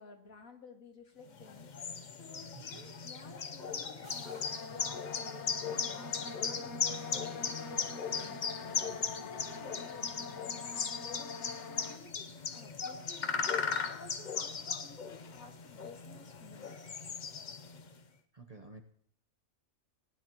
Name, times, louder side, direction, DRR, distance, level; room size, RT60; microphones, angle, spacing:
voice 1, 0.0-8.6 9.1-12.1 12.5-16.8, left 3 dB, 80° left, 2 dB, 2.3 m, -54 dB
sound 1, 1.4-17.9, left 6 dB, 40° left, 0.7 m, -38 dB
sound 2, 4.0-6.4, right 2 dB, 60° right, 2.7 m, -61 dB
sound 3, 4.4-12.0, left 4 dB, 60° left, 1.2 m, -45 dB
voice 2, 18.3-18.8, right 3 dB, 35° right, 4 dB, 0.8 m, -51 dB
19.0 x 10.0 x 3.0 m, 0.66 s
omnidirectional pair, 1.4 m